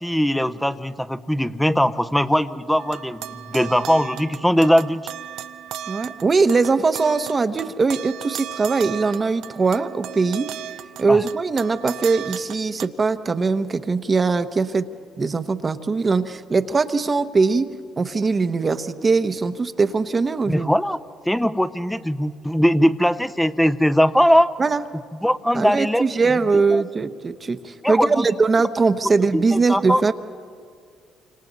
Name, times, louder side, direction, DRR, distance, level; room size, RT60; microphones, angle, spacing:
voice 1, 0.0-5.0 11.1-11.2 20.5-21.0 21.2-24.5 25.2-26.0 26.7-26.8 27.8-28.3 29.3-30.0, equal, 5° left, 11 dB, 0.8 m, -20 dB
sound 1, 2.8-12.9, right 11 dB, 75° right, 0.6 m, -36 dB
voice 2, 5.9-10.5 11.0-14.9 15.2-17.7 18.0-20.7 24.6-24.8 25.5-30.1, right 4 dB, 35° right, 10 dB, 1.0 m, -21 dB
28.0 x 25.5 x 4.1 m, 2.1 s
supercardioid pair, 70°, 0 cm